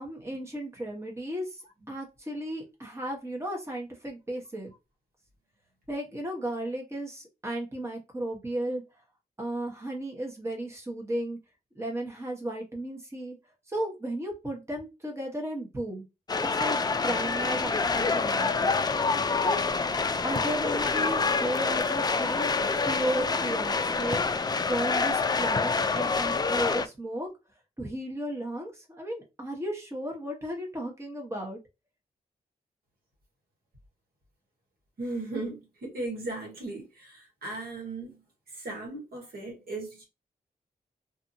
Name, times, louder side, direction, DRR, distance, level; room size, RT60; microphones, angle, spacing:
voice 1, 0.0-4.7 5.9-8.8 9.4-11.4 11.8-13.4 13.7-16.0 16.5-18.7 19.4-19.6 20.2-22.5 22.9-24.2 24.7-27.3 27.8-31.6, right 1 dB, 15° right, 1.1 m, -34 dB
sound 1, 16.3-26.9, left 4 dB, 25° left, 0.4 m, -27 dB
voice 2, 35.0-38.2 38.5-40.0, right 2 dB, 70° right, 1.4 m, -37 dB
2.6 x 2.6 x 2.6 m
cardioid pair, 55°, 17 cm